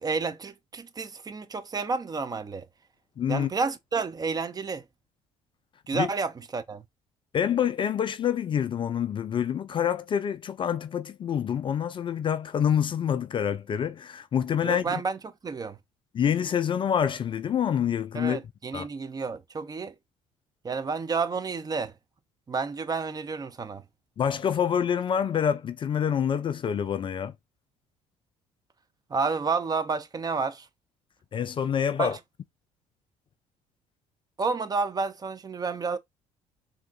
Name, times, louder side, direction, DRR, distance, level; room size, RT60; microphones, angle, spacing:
voice 1, 0.0-2.7 3.3-4.8 5.9-6.8 14.6-15.8 18.1-19.9 20.6-21.9 22.5-23.8 29.1-30.7 32.0-32.2 34.4-36.0, right 4 dB, 25° right, 0.5 m, -30 dB
voice 2, 3.2-3.5 5.9-6.1 7.3-14.9 16.1-18.4 18.7-18.9 24.2-27.3 31.3-32.2, left 8 dB, 30° left, 0.3 m, -27 dB
3.5 x 2.6 x 2.3 m
figure-of-eight pair, 50°, 16 cm